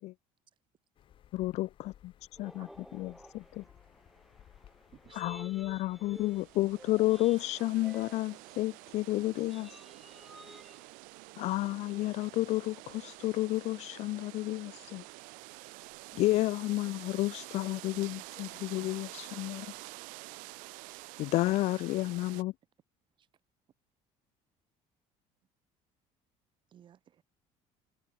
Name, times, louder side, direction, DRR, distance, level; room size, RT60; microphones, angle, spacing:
sound 1, 0.9-7.2, left 11 dB, 40° left, 1.8 m, -61 dB
voice 1, 1.3-2.1 2.4-2.7 2.9-3.1 5.1-9.7 11.4-15.0 16.1-19.7 21.2-22.5, left 18 dB, 55° left, 0.5 m, -31 dB
voice 2, 2.3-10.9, equal, ahead, 5.8 m, -54 dB
sound 2, 6.2-22.4, right 27 dB, 85° right, 0.9 m, -48 dB
voice 3, 17.9-18.2 21.3-22.0 26.7-27.2, right 9 dB, 35° right, 3.9 m, -59 dB
cardioid pair, 160°, 13 cm